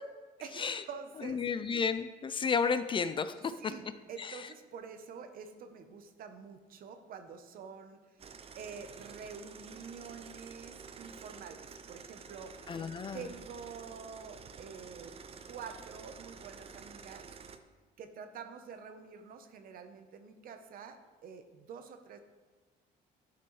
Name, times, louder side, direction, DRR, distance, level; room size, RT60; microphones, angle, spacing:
voice 1, 0.4-1.4 3.6-8.0 8.6-12.6 13.1-15.2 15.4-17.2 18.0-22.2, right 6 dB, 60° right, 8 dB, 0.8 m, -47 dB
voice 2, 1.2-3.5 4.2-4.5 12.7-13.2, left 5 dB, 30° left, 11 dB, 0.4 m, -32 dB
sound 1, 8.2-17.6, right 5 dB, 35° right, 0.5 m, -50 dB
11.0 x 5.9 x 3.1 m, 1.3 s
cardioid pair, 110°, 17 cm